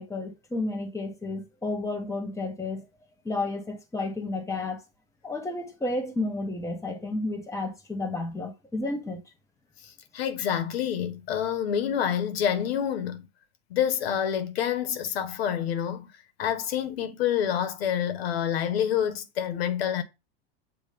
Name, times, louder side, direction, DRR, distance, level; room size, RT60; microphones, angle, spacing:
voice 1, 0.0-2.8 3.2-4.8 5.2-9.2, left 2 dB, 10° left, 1.3 m, -31 dB
voice 2, 10.1-13.3 13.7-16.1 16.4-20.0, left 9 dB, 85° left, 1.2 m, -27 dB
7.3 x 2.5 x 5.1 m
supercardioid pair, 125°, 30 cm